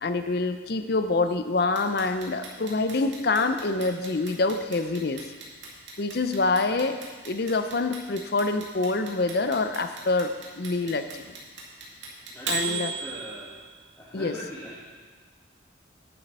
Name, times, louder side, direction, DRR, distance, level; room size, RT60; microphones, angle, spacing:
voice 1, 0.0-5.3 6.0-7.0 7.3-11.1 12.5-12.9 14.1-14.4, left 3 dB, 55° left, 9 dB, 0.6 m, -26 dB
Clock, 1.8-13.7, right 5 dB, 70° right, 2.2 m, -35 dB
voice 2, 12.3-13.6 14.0-14.8, equal, 10° left, -7 dB, 1.3 m, -40 dB
10.0 x 7.6 x 5.4 m, 1.4 s
head